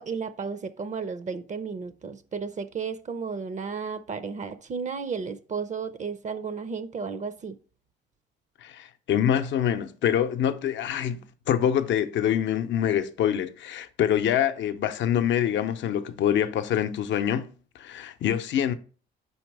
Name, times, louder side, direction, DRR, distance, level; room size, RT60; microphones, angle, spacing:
voice 1, 0.0-7.6, right 5 dB, 40° right, 0.5 m, -33 dB
voice 2, 8.6-17.5 17.8-18.7, left 9 dB, 70° left, 0.6 m, -25 dB
5.2 x 4.2 x 4.6 m
cardioid pair, 90°, 20 cm